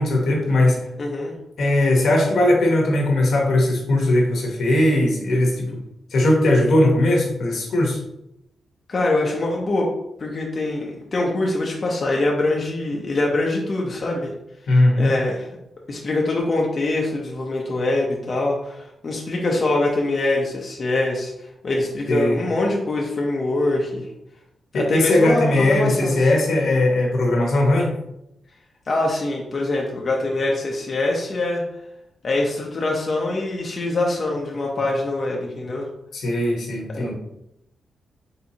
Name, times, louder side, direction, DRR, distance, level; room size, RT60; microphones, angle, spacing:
voice 1, 0.0-0.8 1.6-5.7 6.1-8.0 14.7-15.1 22.1-22.4 24.7-27.9 36.1-37.1, left 1 dB, 70° left, 0 dB, 1.1 m, -19 dB
voice 2, 1.0-1.3 8.9-9.9 10.2-14.3 15.0-15.5 15.9-24.1 24.7-26.4 28.9-31.6 32.2-35.9 36.9-37.1, left 2 dB, 40° left, -2 dB, 0.7 m, -24 dB
4.3 x 3.6 x 2.8 m, 0.84 s
cardioid pair, 90°, 0 cm